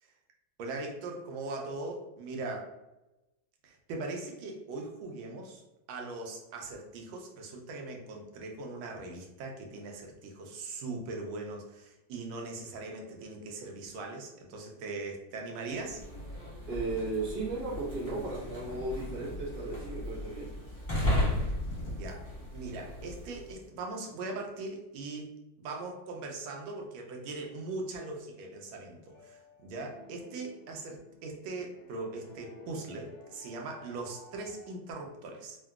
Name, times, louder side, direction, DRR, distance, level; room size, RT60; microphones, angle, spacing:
voice 1, 0.6-2.7 3.6-5.6 5.9-16.0 21.8-22.3 22.5-25.3 25.6-35.6, right 3 dB, 85° right, 1 dB, 1.4 m, -40 dB
sound 1, 15.7-23.6, left 1 dB, 40° left, 0.7 m, -35 dB
voice 2, 16.7-20.5, right 2 dB, 50° right, -7 dB, 1.1 m, -35 dB
sound 2, 29.0-34.7, left 2 dB, 85° left, 1.4 m, -54 dB
3.7 x 2.2 x 2.3 m, 0.99 s
omnidirectional pair, 2.2 m